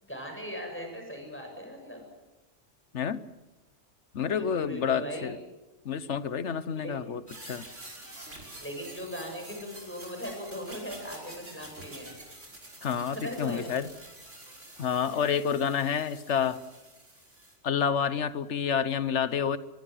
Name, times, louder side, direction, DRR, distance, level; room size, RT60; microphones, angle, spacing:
voice 1, 0.0-2.0 4.3-5.3 6.8-7.1 8.6-12.1 13.1-13.6 15.1-15.3, equal, 10° left, 2 dB, 7.4 m, -39 dB
voice 2, 2.9-3.2 4.1-5.4 5.8-7.2 7.5-7.7 12.8-13.9 14.8-16.6 17.6-19.6, left 7 dB, 75° left, 15 dB, 1.3 m, -29 dB
sound 1, 7.3-17.6, right 1 dB, 85° right, 5.8 m, -48 dB
23.5 x 22.5 x 7.9 m, 1.1 s
omnidirectional pair, 1.2 m